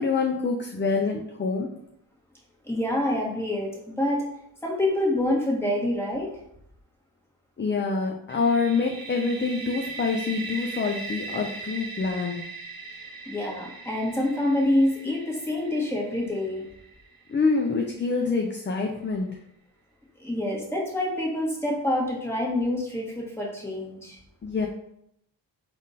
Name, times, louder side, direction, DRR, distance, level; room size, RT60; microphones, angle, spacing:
voice 1, 0.0-1.7 7.6-12.5 17.3-19.4 24.4-24.7, left 4 dB, 25° left, 2 dB, 0.5 m, -26 dB
voice 2, 2.6-4.2 4.6-6.3 13.3-16.6 20.2-24.2, left 1 dB, 5° left, -3 dB, 1.5 m, -26 dB
sound 1, 8.3-18.0, right 3 dB, 50° right, 0.8 m, -40 dB
3.6 x 2.6 x 4.0 m, 0.76 s
cardioid pair, 60°, 45 cm